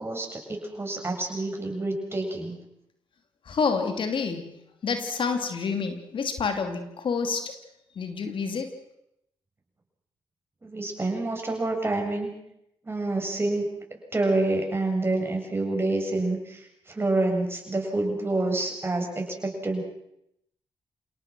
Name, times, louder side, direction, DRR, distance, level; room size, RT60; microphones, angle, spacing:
voice 1, 0.0-2.6 10.6-12.3 12.9-13.7 14.1-16.6 16.9-19.8, right 2 dB, 25° right, 2 dB, 7.5 m, -27 dB
voice 2, 3.5-4.4 4.8-7.4 8.0-8.7, left 5 dB, 60° left, 6 dB, 2.8 m, -28 dB
28.0 x 18.0 x 6.3 m, 0.80 s
cardioid pair, 60°, 10 cm